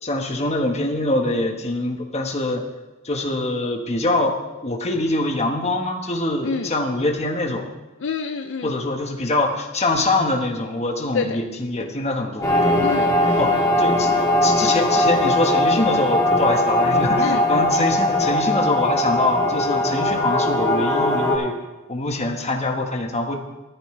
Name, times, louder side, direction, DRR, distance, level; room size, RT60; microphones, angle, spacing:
voice 1, 0.0-2.6 3.0-4.4 4.6-7.6 8.6-12.5 13.4-13.5 13.8-14.1 14.4-21.5 21.9-23.3, left 2 dB, 35° left, 3 dB, 1.5 m, -23 dB
voice 2, 6.4-6.7 8.0-8.7 11.1-11.4 12.8-13.4 17.2-17.4, left 5 dB, 65° left, 6 dB, 0.6 m, -27 dB
sound 1, 12.4-21.4, left 1 dB, 15° left, 2.2 m, -20 dB
14.5 x 13.0 x 3.3 m, 1.1 s
head